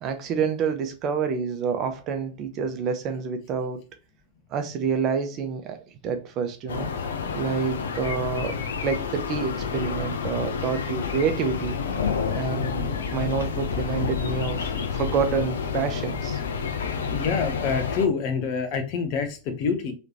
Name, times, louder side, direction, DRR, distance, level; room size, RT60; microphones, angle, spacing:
voice 1, 0.0-3.8 4.5-6.9 7.3-8.6 8.8-11.8 12.3-16.4, right 6 dB, 35° right, 0.8 m, -28 dB
sound 1, 6.7-18.1, left 6 dB, 65° left, 0.6 m, -29 dB
voice 2, 17.1-19.9, left 5 dB, 45° left, 1.1 m, -26 dB
4.8 x 3.3 x 2.9 m
figure-of-eight pair, 90°, 0 cm